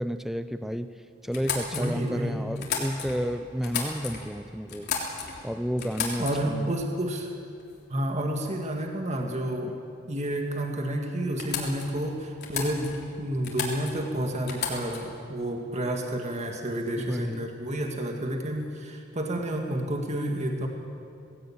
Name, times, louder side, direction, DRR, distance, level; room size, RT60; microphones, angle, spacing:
voice 1, 0.0-4.9 5.4-6.7 16.9-17.5, equal, ahead, 11 dB, 0.5 m, -31 dB
sound 1, 1.3-3.3 3.6-4.3 4.7-5.5 5.8-6.6 7.6-7.8 8.2-8.6 10.5-10.6 10.9-11.0 11.4-12.0 12.4-13.1 13.4-14.1 14.5-15.2, left 6 dB, 55° left, 3.4 m, -34 dB
voice 2, 1.7-2.4 6.2-7.3 7.9-9.7 10.1-12.9 13.2-20.7, right 1 dB, 35° right, 2 dB, 1.9 m, -30 dB
19.0 x 17.0 x 8.8 m, 2.6 s
head